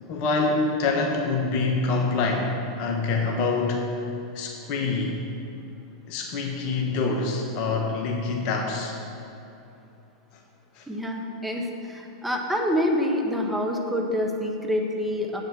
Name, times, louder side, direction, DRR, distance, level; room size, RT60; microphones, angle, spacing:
voice 1, 0.1-3.9 4.3-5.2 6.1-9.0 10.8-10.9, left 3 dB, 50° left, 1 dB, 1.2 m, -26 dB
voice 2, 10.9-15.4, equal, 5° right, 0 dB, 1.4 m, -27 dB
8.6 x 6.5 x 8.0 m, 2.8 s
hypercardioid pair, 95°, 2 cm